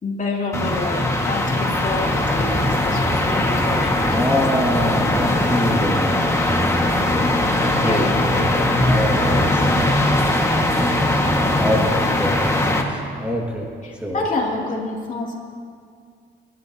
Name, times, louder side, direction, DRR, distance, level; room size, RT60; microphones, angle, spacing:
voice 1, 0.0-4.6 7.8-8.1 12.2-12.4 13.8-15.3, left 2 dB, 40° left, -2 dB, 3.0 m, -28 dB
sound 1, 0.5-12.8, left 1 dB, 15° left, 1.8 m, -20 dB
voice 2, 4.1-6.3 7.5-10.0 11.6-13.7 14.0-14.2, equal, 5° right, -2 dB, 2.1 m, -25 dB
27.0 x 12.5 x 2.9 m, 2.2 s
cardioid pair, 90°, 20 cm